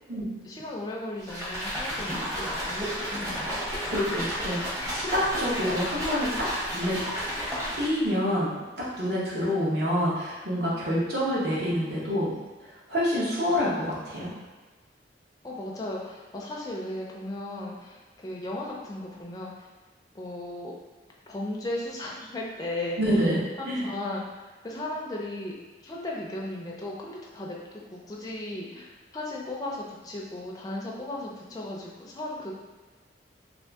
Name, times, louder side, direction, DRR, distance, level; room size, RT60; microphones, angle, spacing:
voice 1, 0.4-3.5 15.4-19.7 20.1-20.7 21.3-23.3 23.6-25.5 25.8-32.6, left 1 dB, 20° left, -3 dB, 0.4 m, -36 dB
sound 1, 1.2-8.1, equal, 20° right, 0.8 m, -32 dB
voice 2, 3.8-6.5 6.7-7.0 7.7-12.3 12.6-14.3 23.0-23.4 23.6-23.9, equal, 55° right, -7 dB, 0.9 m, -27 dB
2.6 x 2.5 x 3.4 m, 1.3 s
head